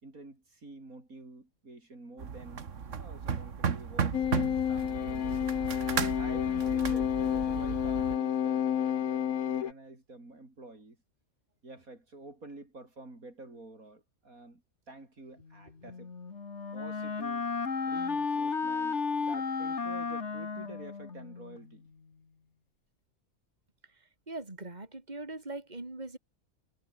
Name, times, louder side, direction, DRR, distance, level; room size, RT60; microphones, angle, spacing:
voice 1, 0.0-2.7 3.0-5.3 6.2-11.0 11.6-16.1 16.7-17.5 17.9-21.9, right 2 dB, 85° right, 6.0 m, -49 dB
sound 1, 2.2-8.2, right 6 dB, 60° right, 1.8 m, -35 dB
sound 2, 4.1-9.7, left 9 dB, 80° left, 1.4 m, -30 dB
Wind instrument woodwind instrument, 15.8-21.6, left 5 dB, 55° left, 2.2 m, -33 dB
voice 2, 24.3-26.2, right 2 dB, 30° right, 3.8 m, -41 dB
omnidirectional pair, 1.4 m